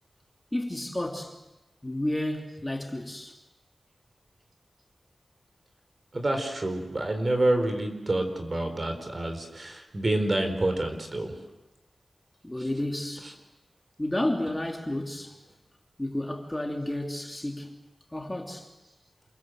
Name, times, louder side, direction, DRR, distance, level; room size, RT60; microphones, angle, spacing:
voice 1, 0.5-1.4 1.8-3.4 12.4-13.3 14.0-15.3 16.0-17.8 18.1-18.7, left 1 dB, 15° left, 2.7 m, -31 dB
voice 2, 6.1-11.3 12.6-12.7 13.2-13.3, right 1 dB, 40° right, 4.3 m, -28 dB
28.5 x 22.0 x 8.0 m
wide cardioid pair, 95°, 0 cm